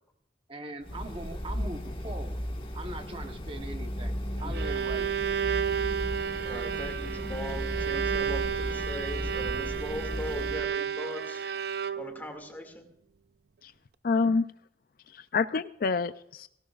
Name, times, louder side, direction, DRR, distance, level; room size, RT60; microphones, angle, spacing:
voice 1, 0.5-2.4 2.7-5.3, right 2 dB, 30° right, 6 dB, 1.0 m, -41 dB
sound 1, 0.8-10.7, equal, 30° left, 1.5 m, -35 dB
Bowed string instrument, 4.3-12.3, right 8 dB, 65° right, 0.5 m, -32 dB
voice 2, 6.4-11.4 11.9-12.8, left 1 dB, 10° left, 3 dB, 2.1 m, -40 dB
voice 3, 14.0-14.4 15.1-16.5, left 4 dB, 55° left, 13 dB, 0.4 m, -27 dB
18.0 x 17.5 x 2.4 m, 0.72 s
head